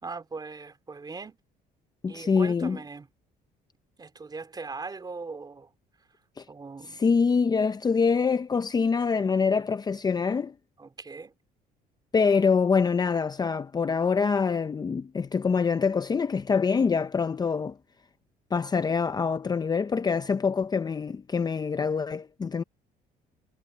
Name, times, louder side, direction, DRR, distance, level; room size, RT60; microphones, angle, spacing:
voice 1, 0.0-1.4 2.1-3.1 4.0-5.7 6.5-7.0 10.8-11.3, right 4 dB, 25° right, 3.2 m, -40 dB
voice 2, 2.0-2.8 6.4-6.5 6.9-10.5 12.1-17.8 18.5-22.6, left 5 dB, 25° left, 0.6 m, -25 dB
cardioid pair, 110°, 17 cm